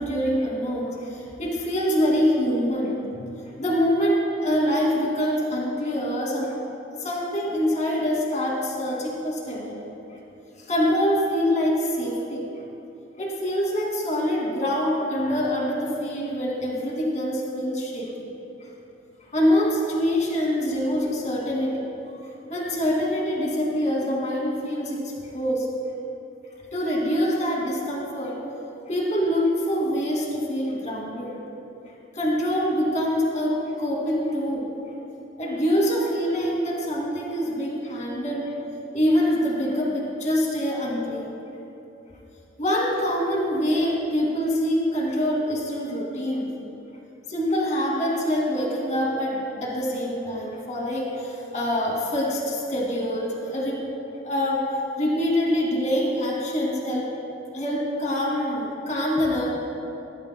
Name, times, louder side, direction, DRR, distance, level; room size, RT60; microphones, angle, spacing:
voice 1, 0.0-3.3 3.6-6.5 7.0-9.8 10.6-12.4 13.2-18.3 19.3-21.8 22.5-25.0 25.3-25.6 26.7-28.4 28.9-31.3 32.1-34.7 35.4-38.5 38.9-41.3 42.6-46.5 47.3-53.8 54.2-54.6 55.0-57.1 57.5-59.4, equal, 40° left, -3 dB, 2.6 m, -25 dB
18.5 x 14.5 x 2.3 m, 2.9 s
head